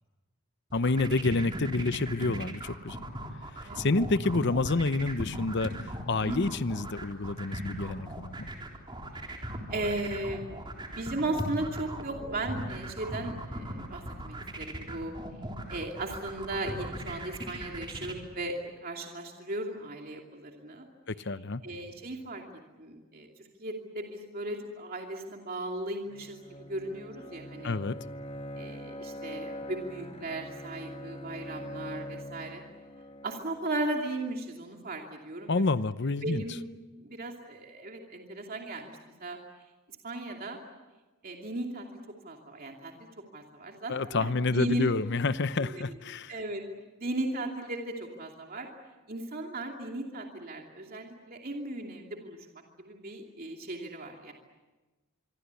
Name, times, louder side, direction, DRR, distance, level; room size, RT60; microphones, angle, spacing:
voice 1, 0.7-3.0 3.8-5.7 6.1-8.5 21.1-21.6 27.6-28.0 35.5-36.4 43.9-46.3, left 3 dB, 55° left, 14 dB, 0.8 m, -28 dB
sound 1, 0.7-18.1, right 1 dB, 20° right, 3.7 m, -38 dB
voice 2, 3.6-3.9 6.2-6.7 9.3-9.4 9.7-10.5 11.0-15.1 15.7-20.9 21.6-22.4 22.8-26.4 26.7-27.7 28.6-32.6 33.2-35.6 36.2-36.6 37.0-39.4 40.0-40.6 41.2-41.8 42.2-42.9 43.3-44.9 45.6-46.0 46.3-46.6 47.0-48.7 49.1-52.4 52.8-54.3, right 2 dB, 45° right, 1 dB, 2.7 m, -36 dB
Bowed string instrument, 26.1-33.9, equal, 25° left, 1.5 m, -43 dB
26.0 x 24.5 x 8.3 m, 1.2 s
head